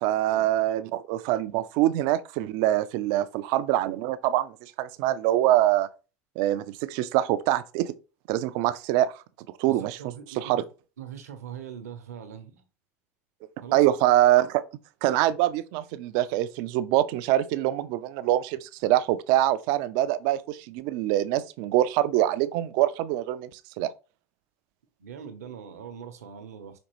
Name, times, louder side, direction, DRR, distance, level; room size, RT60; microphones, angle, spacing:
voice 1, 0.0-5.9 6.4-7.9 8.3-9.1 9.6-10.0 10.4-10.6 13.7-14.6 15.0-23.9, right 14 dB, 60° right, 0.4 m, -24 dB
voice 2, 9.7-10.6 11.0-12.6 13.6-13.8 25.0-26.8, right 8 dB, 85° right, 0.8 m, -41 dB
5.1 x 2.9 x 2.9 m
hypercardioid pair, 85°, 8 cm